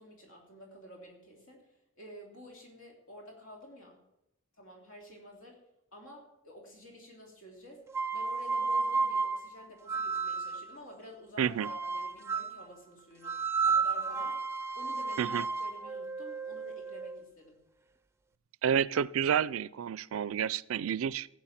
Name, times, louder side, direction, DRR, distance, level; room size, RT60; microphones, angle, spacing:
voice 1, 0.0-4.0 4.6-5.6 5.9-7.8 8.1-14.5 14.7-17.6, equal, 80° left, 1 dB, 2.9 m, -51 dB
sound 1, 7.9-10.7 11.6-12.6 13.2-17.2, right 4 dB, 15° right, 0.4 m, -32 dB
voice 2, 11.4-11.7 15.2-15.4 18.6-21.3, right 8 dB, 85° right, 21 dB, 0.4 m, -30 dB
15.0 x 9.3 x 5.8 m, 0.85 s
head